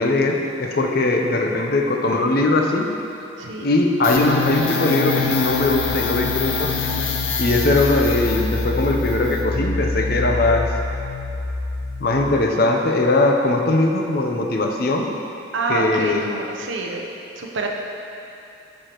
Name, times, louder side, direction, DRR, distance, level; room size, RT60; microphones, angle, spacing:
voice 1, 0.0-2.9 3.6-7.1 7.4-10.7 12.0-15.1 15.7-16.2, left 2 dB, 50° left, 2 dB, 0.6 m, -20 dB
sound 1, 4.0-12.5, left 4 dB, 90° left, 0.7 m, -25 dB
voice 2, 15.5-17.1 17.4-17.7, right 3 dB, 80° right, 1 dB, 0.8 m, -26 dB
9.5 x 6.6 x 3.0 m, 2.8 s
head